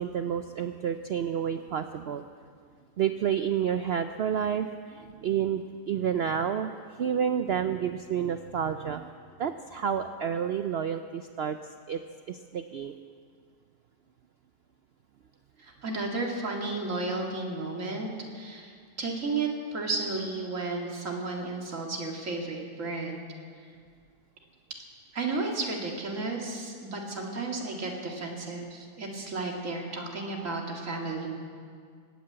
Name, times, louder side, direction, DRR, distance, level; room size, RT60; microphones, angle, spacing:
voice 1, 0.0-2.2 3.0-9.1 9.4-11.6 11.9-12.0 12.3-13.0, right 8 dB, 80° right, 9 dB, 0.5 m, -30 dB
voice 2, 15.6-18.1 18.3-23.2 25.1-31.4, right 3 dB, 50° right, 0 dB, 2.5 m, -33 dB
18.5 x 9.6 x 7.9 m, 2.1 s
omnidirectional pair, 1.7 m